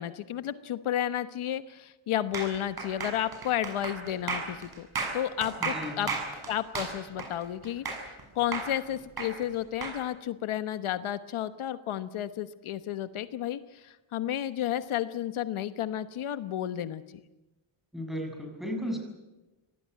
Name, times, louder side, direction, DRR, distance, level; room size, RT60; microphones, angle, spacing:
voice 1, 0.0-4.9 5.1-6.1 6.5-8.1 8.3-17.0, left 11 dB, 75° left, 12 dB, 1.2 m, -32 dB
sound 1, 2.3-8.2 8.5-10.0, right 4 dB, 45° right, 7.2 m, -34 dB
voice 2, 5.6-6.2 17.9-19.0, equal, ahead, 3 dB, 6.9 m, -35 dB
26.0 x 18.5 x 9.4 m, 1.1 s
cardioid pair, 105°, 49 cm